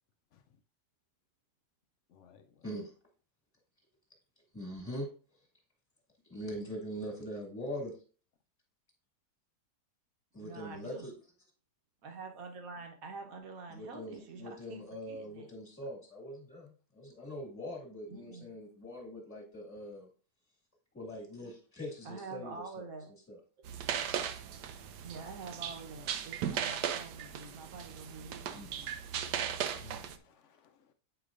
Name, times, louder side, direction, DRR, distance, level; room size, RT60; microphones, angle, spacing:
voice 1, 2.1-2.6 29.8-30.9, left 7 dB, 70° left, 8 dB, 0.7 m, -59 dB
voice 2, 4.5-5.1 6.3-7.9 10.3-11.1 13.7-20.1 20.9-23.4 28.5-28.7, equal, 10° left, -2 dB, 1.7 m, -42 dB
voice 3, 10.4-11.1 12.0-15.5 18.1-18.5 22.0-23.1 25.0-29.0, right 4 dB, 60° right, 4 dB, 1.4 m, -46 dB
sound 1, 23.6-30.2, right 8 dB, 80° right, 1.2 m, -37 dB
8.0 x 4.9 x 2.5 m, 0.39 s
omnidirectional pair, 1.7 m